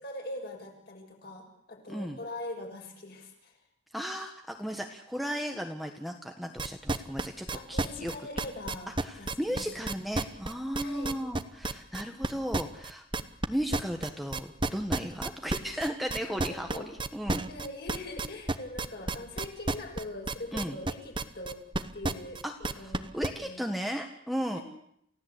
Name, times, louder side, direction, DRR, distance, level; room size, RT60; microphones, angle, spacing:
voice 1, 0.0-3.6 7.5-9.6 10.8-11.1 16.3-16.9 17.5-21.6 21.9-23.1 23.4-23.7 24.5-24.6, left 2 dB, 50° left, 1 dB, 6.4 m, -42 dB
voice 2, 1.9-2.2 3.9-8.1 9.0-13.0 13.5-17.4 20.5-20.8 22.4-24.6, equal, ahead, 3 dB, 1.5 m, -35 dB
sound 1, 6.6-13.5 13.7-23.3, right 2 dB, 25° right, 1.0 m, -31 dB
29.0 x 16.5 x 8.3 m, 0.72 s
head